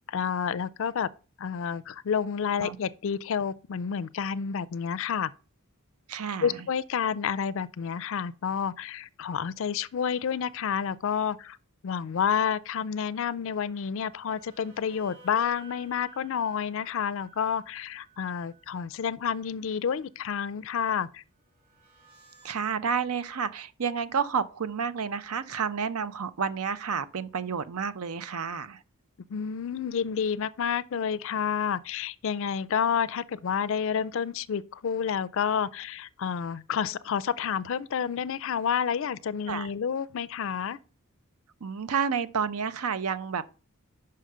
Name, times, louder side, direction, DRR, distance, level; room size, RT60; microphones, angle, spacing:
voice 1, 0.1-1.1 1.4-5.3 6.4-11.6 11.8-21.2 29.3-40.8, left 7 dB, 60° left, 0.4 m, -29 dB
voice 2, 6.1-6.6 22.4-28.8 39.5-39.7 41.6-43.4, right 6 dB, 80° right, 0.6 m, -30 dB
sound 1, 14.3-18.6 21.6-22.5, right 4 dB, 40° right, 2.3 m, -54 dB
5.6 x 5.0 x 6.6 m
head